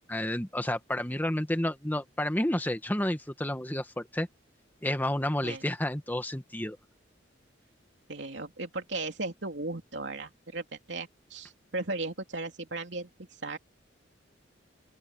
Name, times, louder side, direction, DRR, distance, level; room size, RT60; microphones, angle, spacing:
voice 1, 0.1-4.3 4.8-6.8, left 1 dB, 10° left, 1.3 m, -30 dB
voice 2, 8.1-13.1 13.4-13.6, right 2 dB, 65° right, 3.3 m, -36 dB
open air
head